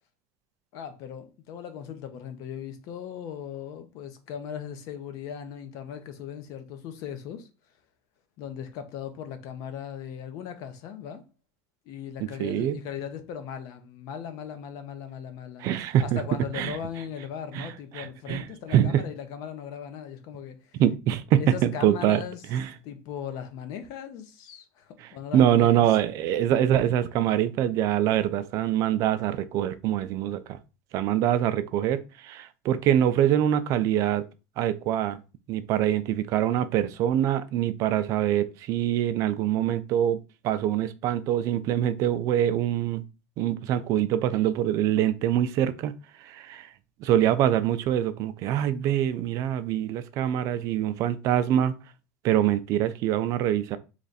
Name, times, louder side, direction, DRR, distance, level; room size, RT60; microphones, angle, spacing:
voice 1, 0.7-7.5 8.4-11.2 11.9-15.7 16.0-20.8 21.4-22.4 22.8-25.9, left 8 dB, 50° left, 0.7 m, -38 dB
voice 2, 12.2-12.8 15.6-16.2 16.5-16.8 17.5-18.4 18.7-19.0 20.8-22.2 22.5-22.7 25.0-30.6 30.9-34.2 34.6-35.2 35.5-40.2 40.4-43.0 43.4-45.9 46.2-46.7 47.0-51.7 52.2-53.8, right 11 dB, 45° right, 0.3 m, -24 dB
3.2 x 2.5 x 3.9 m
supercardioid pair, 150°, 8 cm